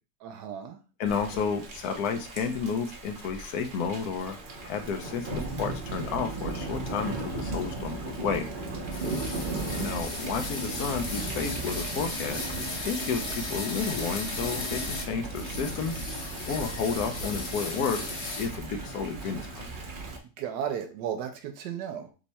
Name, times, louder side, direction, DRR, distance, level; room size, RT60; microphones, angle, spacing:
voice 1, 0.2-0.8 9.1-9.5 20.4-22.1, right 8 dB, 80° right, 6 dB, 1.2 m, -35 dB
voice 2, 1.0-4.4 4.6-8.5 9.8-12.5 12.8-18.0 18.4-19.7, left 6 dB, 70° left, 6 dB, 1.2 m, -31 dB
Thunder / Rain, 1.1-20.2, right 3 dB, 45° right, 0.7 m, -37 dB
sound 1, 8.9-15.0 15.3-18.5, left 3 dB, 50° left, 1.4 m, -36 dB
3.5 x 3.2 x 4.1 m, 0.34 s
omnidirectional pair, 1.8 m